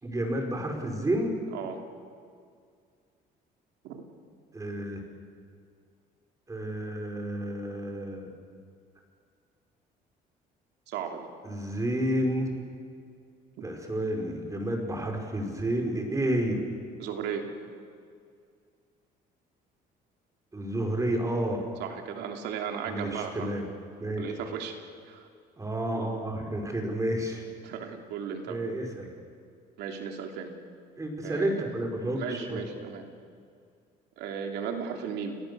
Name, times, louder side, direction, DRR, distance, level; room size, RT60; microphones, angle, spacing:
voice 1, 0.0-1.4 4.5-5.0 6.5-8.3 11.4-12.5 13.6-16.6 20.5-21.6 22.9-23.6 24.0-24.3 25.6-27.4 28.5-29.1 31.0-32.6, right 1 dB, 20° right, 3 dB, 4.8 m, -30 dB
voice 2, 1.5-1.8 3.8-4.0 10.9-11.3 17.0-17.5 21.8-23.5 24.2-24.7 25.1-25.3 27.6-28.6 29.8-30.5 31.2-31.7 32.2-33.0 34.2-35.4, right 7 dB, 85° right, 3 dB, 3.0 m, -35 dB
29.5 x 18.0 x 6.8 m, 2.2 s
cardioid pair, 110°, 17 cm